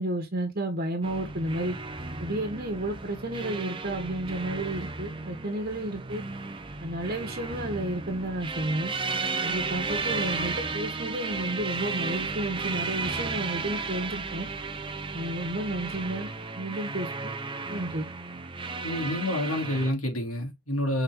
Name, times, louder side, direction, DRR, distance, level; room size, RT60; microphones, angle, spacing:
voice 1, 0.0-1.7 2.2-6.2 6.8-8.9 9.4-14.5 15.1-16.3 16.5-17.3 17.7-18.1, right 1 dB, 45° right, 1.4 m, -32 dB
sound 1, 1.0-19.9, right 4 dB, 25° right, 0.7 m, -34 dB
voice 2, 18.8-21.0, left 1 dB, 80° left, 3.0 m, -28 dB
6.4 x 4.4 x 3.7 m
head